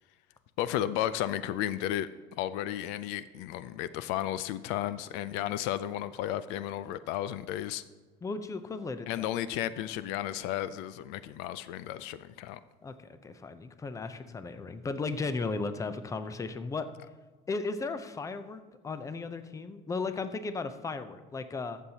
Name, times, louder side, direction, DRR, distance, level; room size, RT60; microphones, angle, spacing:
voice 1, 0.6-2.1 2.4-7.8 9.1-12.6, left 12 dB, 80° left, 15 dB, 0.4 m, -33 dB
voice 2, 8.2-9.2 12.8-16.9 17.5-21.8, left 4 dB, 20° left, 11 dB, 0.6 m, -35 dB
14.5 x 7.2 x 2.9 m, 1.3 s
cardioid pair, 120°, 18 cm